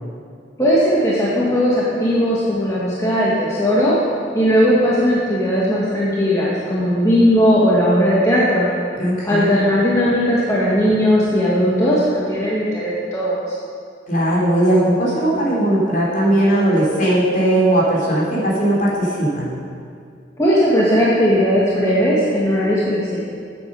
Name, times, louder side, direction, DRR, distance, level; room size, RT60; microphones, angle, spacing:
voice 1, 0.6-4.0 4.3-8.7 9.2-13.5 20.4-23.2, equal, 15° left, -8 dB, 1.6 m, -17 dB
voice 2, 9.0-9.6 14.1-19.5, right 1 dB, 45° left, -6 dB, 3.4 m, -18 dB
9.7 x 8.5 x 6.7 m, 2.3 s
head